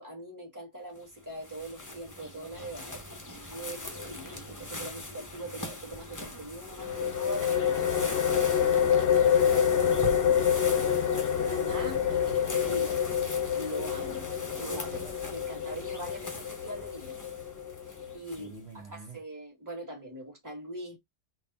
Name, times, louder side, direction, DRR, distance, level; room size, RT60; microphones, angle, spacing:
voice 1, 0.0-3.0 3.5-10.4 11.3-12.0 12.3-13.1 13.5-14.3 14.6-17.1 18.1-18.5 18.9-21.0, right 1 dB, 15° right, 1.9 m, -42 dB
sound 1, 1.0-18.7, left 1 dB, 20° left, 0.7 m, -42 dB
sound 2, 6.8-18.2, left 8 dB, 60° left, 0.8 m, -27 dB
voice 2, 10.2-11.0 11.9-12.4 18.3-19.2, right 2 dB, 60° right, 1.3 m, -47 dB
4.0 x 2.3 x 4.0 m
omnidirectional pair, 1.3 m